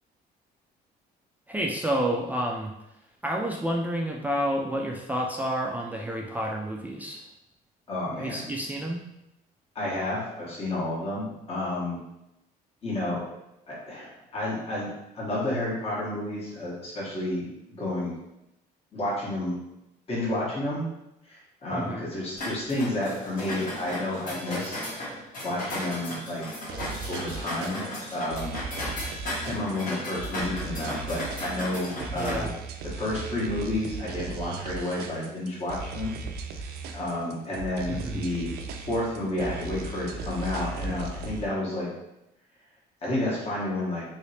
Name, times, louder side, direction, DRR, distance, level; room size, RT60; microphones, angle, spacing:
voice 1, 1.5-2.7 3.2-7.2 8.2-9.0 21.7-22.1 32.1-32.5 37.9-38.3, right 1 dB, 10° right, -1 dB, 0.3 m, -29 dB
voice 2, 7.9-8.4 9.7-12.0 12.8-13.2 13.7-17.5 17.8-18.1 18.9-19.6 20.1-20.8 21.3-24.9 25.4-26.8 27.1-27.9 28.1-28.6 29.4-32.5 32.8-36.1 36.5-38.5 38.9-41.9 43.0-44.0, left 1 dB, 35° left, -6 dB, 1.3 m, -31 dB
sound 1, 22.4-32.4, left 1 dB, 55° left, 1.4 m, -36 dB
sound 2, 26.7-41.5, right 4 dB, 75° right, 0.4 m, -37 dB
3.1 x 3.1 x 2.8 m, 0.88 s
cardioid pair, 110°, 17 cm